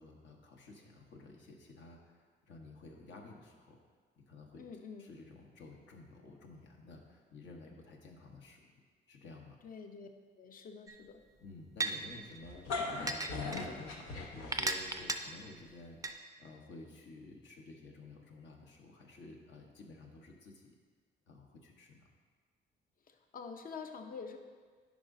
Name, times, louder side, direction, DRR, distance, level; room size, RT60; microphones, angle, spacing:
voice 1, 0.0-3.8 4.3-4.6 5.0-8.7 9.1-9.6 11.4-20.7 21.3-22.1, left 2 dB, 65° left, 1 dB, 1.1 m, -53 dB
voice 2, 4.6-5.1 9.6-10.1 10.4-11.2 23.1-24.4, left 5 dB, 45° left, 6 dB, 0.7 m, -47 dB
sound 1, 10.9-11.0 11.8-11.9 13.1-13.6 14.5-15.2 16.0-16.1, right 3 dB, 15° right, 0.4 m, -33 dB
sound 2, 12.4-15.0, left 4 dB, 85° left, 0.9 m, -39 dB
10.5 x 5.0 x 2.7 m, 1.5 s
cardioid pair, 90°, 20 cm